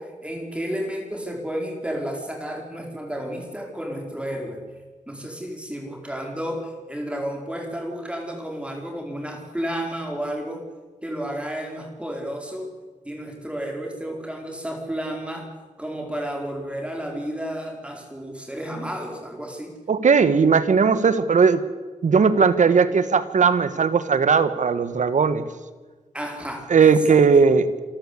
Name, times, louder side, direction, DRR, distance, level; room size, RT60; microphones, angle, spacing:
voice 1, 0.0-4.6 5.1-10.6 11.0-12.7 13.0-15.5 15.8-19.7 26.1-27.2, equal, 10° right, 2 dB, 4.7 m, -32 dB
voice 2, 19.9-21.6 22.0-25.4 26.7-27.8, right 5 dB, 65° right, 12 dB, 1.7 m, -18 dB
27.5 x 14.0 x 8.6 m, 1.3 s
wide cardioid pair, 105°, 14 cm